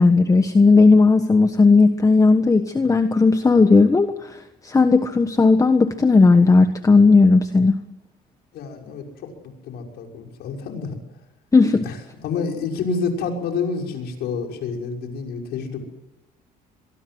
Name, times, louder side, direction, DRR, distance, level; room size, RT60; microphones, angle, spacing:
voice 1, 0.0-4.4 4.6-7.7 11.5-11.9, left 3 dB, 20° left, 8 dB, 1.4 m, -15 dB
voice 2, 8.5-9.0 9.4-11.0 11.8-15.8, left 5 dB, 75° left, 2 dB, 6.3 m, -28 dB
23.5 x 23.5 x 7.9 m, 0.99 s
cardioid pair, 110°, 17 cm